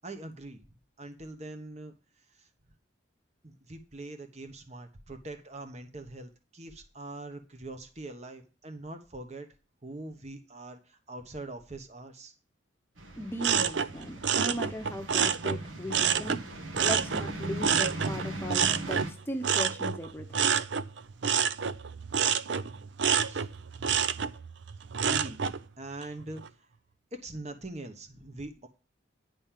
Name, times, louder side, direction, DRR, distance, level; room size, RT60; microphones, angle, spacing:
voice 1, 0.0-0.6 1.0-1.9 2.3-2.5 3.4-9.5 9.8-12.3 23.2-23.5 25.0-26.4 27.1-28.7, right 2 dB, 35° right, 7 dB, 1.2 m, -43 dB
sound 1, 13.0-19.1, right 1 dB, 85° right, 1.7 m, -39 dB
voice 2, 13.2-16.4 16.8-20.5, equal, 10° left, 4 dB, 0.9 m, -37 dB
sound 2, 13.4-16.4 16.7-25.6 26.0-26.5, right 7 dB, 65° right, 0.5 m, -28 dB
10.0 x 5.4 x 7.5 m, 0.33 s
head